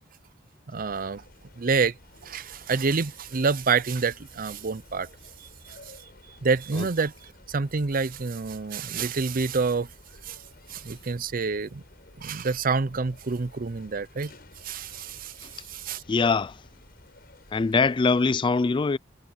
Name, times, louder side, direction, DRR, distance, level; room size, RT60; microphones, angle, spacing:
voice 1, 0.7-1.2 1.6-1.9 2.2-5.1 5.4-5.8 6.4-9.9 10.2-10.4 10.7-11.8 12.2-14.3 14.6-16.0, right 4 dB, 45° right, 0.6 m, -28 dB
sound 1, 0.8-18.1, left 1 dB, 50° left, 7.8 m, -53 dB
voice 2, 16.1-16.6 17.5-19.0, left 4 dB, 25° left, 0.3 m, -22 dB
head